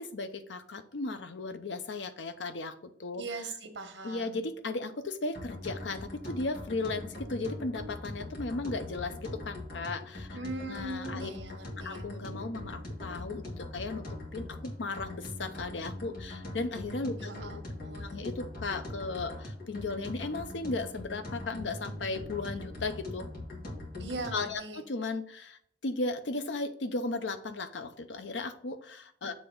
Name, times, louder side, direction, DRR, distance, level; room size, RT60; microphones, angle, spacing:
voice 1, 0.0-3.2 4.0-10.4 10.7-11.3 11.8-14.0 14.3-17.5 18.0-23.3 24.3-29.3, left 3 dB, 85° left, 9 dB, 0.7 m, -36 dB
voice 2, 3.1-4.5 10.3-12.0 17.2-18.2 24.0-24.8, right 2 dB, 85° right, 6 dB, 1.2 m, -40 dB
sound 1, 5.3-24.5, left 1 dB, 55° left, 1.8 m, -41 dB
7.4 x 3.4 x 5.2 m, 0.64 s
head